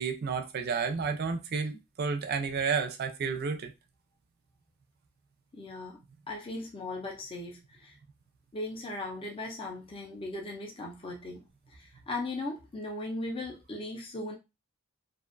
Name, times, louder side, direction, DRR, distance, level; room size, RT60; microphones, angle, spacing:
voice 1, 0.0-3.7, right 5 dB, 45° right, 0.4 m, -31 dB
voice 2, 5.5-8.0 8.5-14.4, left 2 dB, 25° left, 0.4 m, -38 dB
2.4 x 2.2 x 2.4 m
head